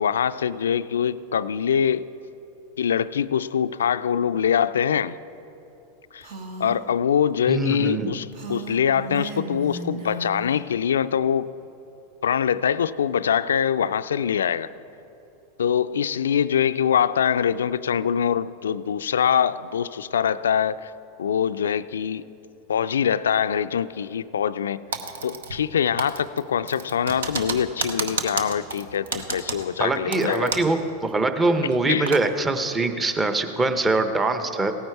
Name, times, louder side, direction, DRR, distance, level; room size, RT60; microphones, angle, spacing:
voice 1, 0.0-2.0 2.8-5.2 6.1-6.3 6.6-11.5 12.2-14.7 15.6-20.9 21.2-22.2 22.7-24.8 25.2-30.5 31.9-32.1, left 8 dB, 80° left, 14 dB, 0.3 m, -23 dB
Female speech woman speaking, 6.2-6.8 8.3-10.6, right 4 dB, 60° right, 1.4 m, -35 dB
voice 2, 7.5-8.1 29.8-34.7, right 3 dB, 20° right, 8 dB, 0.9 m, -23 dB
Typing, 24.9-25.7 26.0-30.8 31.1-31.2 31.7-32.2, right 4 dB, 80° right, 0.9 m, -31 dB
16.5 x 9.3 x 4.6 m, 3.0 s
hypercardioid pair, 100°, 0 cm